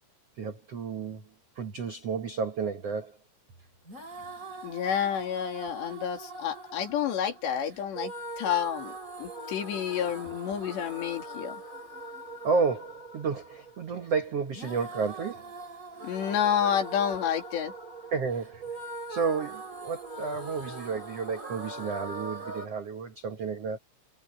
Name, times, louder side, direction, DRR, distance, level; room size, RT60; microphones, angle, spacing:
voice 1, 0.4-1.2 1.6-3.2 12.4-15.4 18.1-18.8 19.1-23.8, right 5 dB, 75° right, 1.4 m, -31 dB
sound 1, 3.9-22.7, right 2 dB, 15° right, 6.0 m, -42 dB
voice 2, 4.6-8.1 8.4-8.9 9.2-11.6 16.0-17.7, left 9 dB, 75° left, 5.3 m, -29 dB
omnidirectional pair, 5.1 m